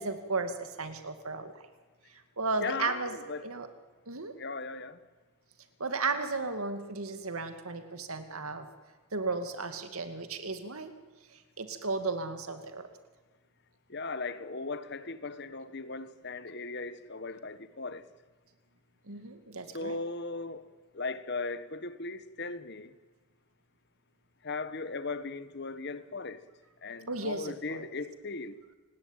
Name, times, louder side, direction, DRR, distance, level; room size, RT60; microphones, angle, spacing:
voice 1, 0.0-1.6 2.1-3.2 3.4-3.7 4.1-4.3 5.8-8.7 9.1-10.9 11.3-12.9 19.0-20.0 27.1-27.9, right 3 dB, 80° right, 2.3 m, -35 dB
voice 2, 2.6-3.4 4.4-5.0 13.9-18.0 19.7-20.6 20.9-22.9 24.4-26.4 26.8-28.6, left 3 dB, 50° left, 1.2 m, -37 dB
28.5 x 19.0 x 9.2 m
head